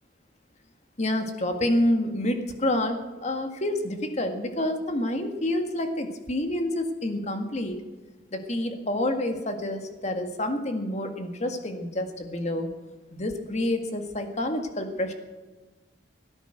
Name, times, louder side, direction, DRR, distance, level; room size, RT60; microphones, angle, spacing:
voice 1, 1.0-7.8 8.3-12.7 13.1-15.1, left 1 dB, 40° left, 6 dB, 1.9 m, -28 dB
17.5 x 10.0 x 7.8 m, 1.2 s
head